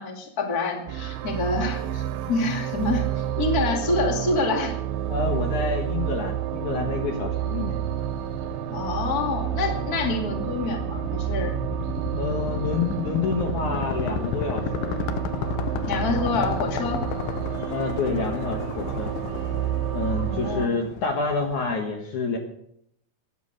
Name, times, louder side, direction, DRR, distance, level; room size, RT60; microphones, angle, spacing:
voice 1, 0.0-2.0 2.3-4.7 8.7-11.6 15.9-17.0 20.2-20.8, left 3 dB, 30° left, 3 dB, 2.3 m, -27 dB
sound 1, 0.9-20.7, right 11 dB, 75° right, 2.5 m, -30 dB
voice 2, 5.1-7.8 12.2-14.9 17.7-19.1 19.9-22.4, left 4 dB, 60° left, 3 dB, 2.7 m, -28 dB
sound 2, 6.7-21.8, left 8 dB, 75° left, 2.5 m, -34 dB
18.0 x 10.0 x 6.5 m, 0.71 s
omnidirectional pair, 4.4 m